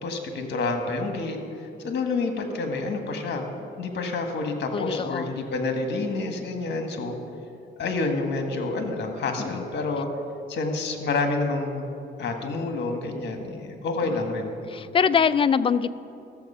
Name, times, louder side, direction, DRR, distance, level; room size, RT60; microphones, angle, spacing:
voice 1, 0.0-3.5 3.8-7.2 7.8-10.1 10.5-11.9 12.2-14.5, left 3 dB, 60° left, 5 dB, 1.5 m, -28 dB
voice 2, 4.7-5.3 9.4-9.7 14.1-14.2 14.7-15.9, left 6 dB, 25° left, 14 dB, 0.4 m, -23 dB
13.5 x 7.2 x 5.6 m, 2.6 s
cardioid pair, 90°, 20 cm